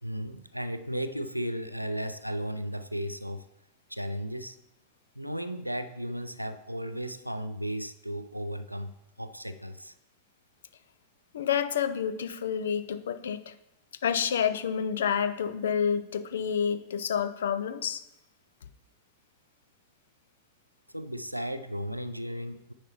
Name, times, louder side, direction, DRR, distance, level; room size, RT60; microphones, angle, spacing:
voice 1, 0.0-3.5 3.9-4.6 5.2-9.9 20.9-22.7, equal, 90° right, 11 dB, 0.4 m, -35 dB
voice 2, 11.3-13.5 14.0-18.0, left 7 dB, 65° left, 12 dB, 0.4 m, -29 dB
9.8 x 5.5 x 3.0 m, 0.88 s
figure-of-eight pair, 90°, 0 cm